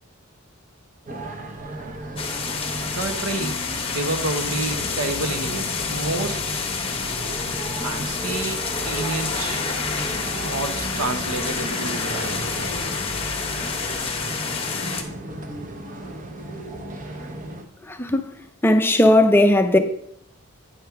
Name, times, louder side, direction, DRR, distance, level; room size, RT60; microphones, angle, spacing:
sound 1, 1.1-17.6, right 1 dB, 35° right, 0.8 m, -35 dB
sound 2, 2.2-15.0, left 5 dB, 25° left, 0.8 m, -28 dB
voice 1, 2.9-3.6 3.9-6.4 7.8-9.6 10.4-12.4, right 2 dB, 80° right, 0.8 m, -29 dB
voice 2, 17.9-18.3 18.6-19.8, left 1 dB, 10° left, 0.4 m, -16 dB
8.6 x 3.5 x 5.7 m
head